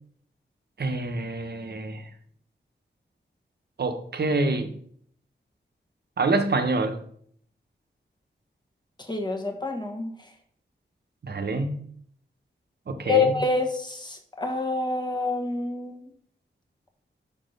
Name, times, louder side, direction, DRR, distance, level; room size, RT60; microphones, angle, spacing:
voice 1, 0.8-2.0 3.8-4.7 6.2-7.0 11.2-11.8 12.9-13.4, right 3 dB, 55° right, 7 dB, 0.8 m, -26 dB
voice 2, 9.1-10.1 13.0-16.0, left 3 dB, 20° left, 3 dB, 1.2 m, -26 dB
5.6 x 4.2 x 5.1 m, 0.63 s
wide cardioid pair, 80°, 20 cm